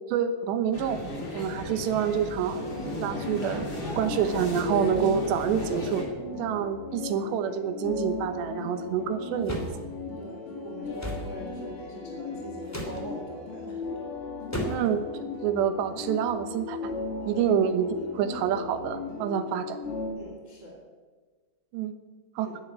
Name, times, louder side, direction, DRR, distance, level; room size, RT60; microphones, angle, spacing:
voice 1, 0.1-1.0 1.3-2.7 3.0-3.7 4.0-6.0 6.4-9.7 14.7-15.0 15.4-16.9 17.3-19.8 21.7-21.9 22.4-22.5, right 8 dB, 80° right, 9 dB, 3.2 m, -27 dB
sound 1, 0.7-6.0, left 1 dB, 25° left, 2.9 m, -35 dB
sound 2, 2.6-20.1, left 3 dB, 85° left, 5.8 m, -37 dB
sound 3, 9.4-9.8 11.0-11.3 12.7-13.0 14.5-14.9, equal, 5° left, 1.6 m, -32 dB
voice 2, 10.2-13.8 17.3-17.5 20.1-20.8 22.4-22.6, right 1 dB, 25° right, 0 dB, 2.1 m, -42 dB
12.5 x 10.5 x 9.6 m, 1.4 s
omnidirectional pair, 5.0 m